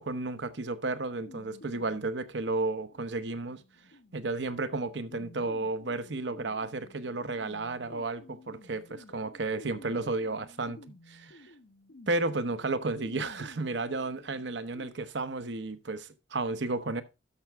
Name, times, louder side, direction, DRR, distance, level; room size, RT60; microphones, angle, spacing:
voice 1, 0.0-3.6 4.1-10.8 11.1-11.5 12.1-17.0, right 3 dB, 65° right, 0.9 m, -33 dB
sound 1, 1.2-14.9, left 1 dB, 65° left, 0.9 m, -53 dB
12.5 x 5.9 x 3.4 m
head